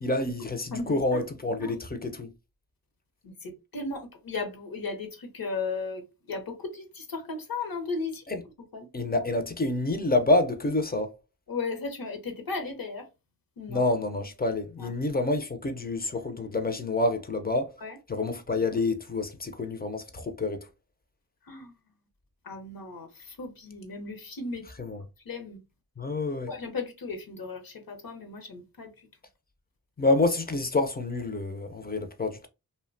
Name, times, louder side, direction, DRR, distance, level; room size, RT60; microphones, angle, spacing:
voice 1, 0.0-2.3 8.3-8.4 8.9-11.1 13.7-17.7 18.1-20.7 24.8-25.0 26.0-26.5 30.0-32.5, left 2 dB, 25° left, 0.4 m, -28 dB
voice 2, 0.7-1.2 1.6-1.7 3.2-8.2 8.7-8.9 11.5-13.1 13.6-13.8 14.8-14.9 17.8-18.0 21.5-21.7 22.4-24.9 25.3-25.6 26.5-28.9, left 4 dB, 65° left, 0.7 m, -36 dB
2.7 x 2.1 x 2.5 m
wide cardioid pair, 80°, 38 cm